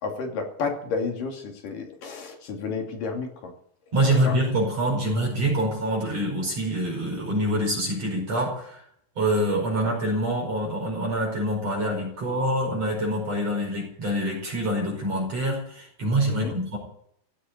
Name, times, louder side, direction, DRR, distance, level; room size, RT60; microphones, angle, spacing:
voice 1, 0.0-3.5 4.1-4.4 16.3-16.6, left 4 dB, 55° left, 3 dB, 4.0 m, -31 dB
voice 2, 3.9-8.8 9.2-16.8, right 1 dB, 35° right, -1 dB, 6.0 m, -25 dB
16.5 x 8.5 x 9.5 m, 0.66 s
omnidirectional pair, 5.1 m